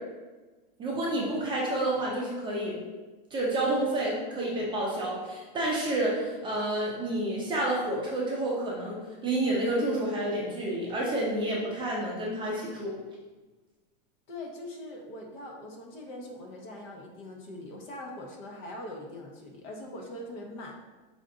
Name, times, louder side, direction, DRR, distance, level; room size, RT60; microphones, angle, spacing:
voice 1, 0.8-2.8 3.3-9.0 9.2-13.0, right 1 dB, 15° right, -4 dB, 0.6 m, -29 dB
voice 2, 14.3-20.8, left 1 dB, 50° left, 0 dB, 1.0 m, -42 dB
5.3 x 2.5 x 3.7 m, 1.2 s
supercardioid pair, 155°, 29 cm